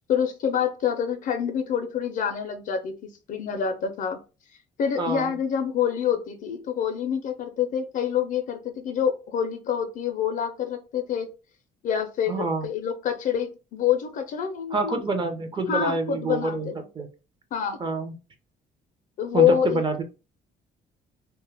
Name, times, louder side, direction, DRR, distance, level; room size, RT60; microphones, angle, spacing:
voice 1, 0.1-4.2 4.8-11.3 11.8-15.1 15.7-16.8 17.5-17.8 19.2-19.8, left 8 dB, 50° left, 0.4 m, -26 dB
voice 2, 5.0-5.3 12.3-12.7 14.7-16.7 17.0-17.1 17.8-18.1 19.3-20.0, right 3 dB, 30° right, 0.6 m, -27 dB
2.2 x 2.0 x 3.2 m
cardioid pair, 110°, 17 cm